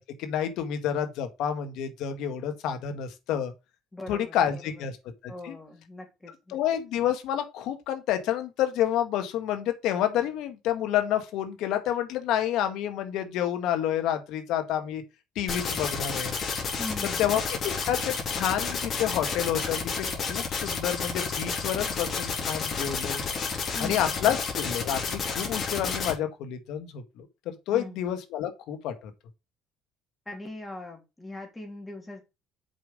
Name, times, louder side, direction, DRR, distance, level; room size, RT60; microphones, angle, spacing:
voice 1, 0.2-3.5 4.1-5.0 5.4-5.6 6.5-15.0 15.4-16.3 17.0-23.2 23.8-29.1, left 10 dB, 65° left, 1.9 m, -29 dB
voice 2, 3.9-4.8 5.3-6.6 16.8-17.4 23.7-24.3 27.7-28.0 30.3-32.2, left 2 dB, 10° left, 3.6 m, -41 dB
sound 1, 15.5-26.1, left 5 dB, 35° left, 3.5 m, -31 dB
7.4 x 5.7 x 5.1 m
cardioid pair, 130°, 0 cm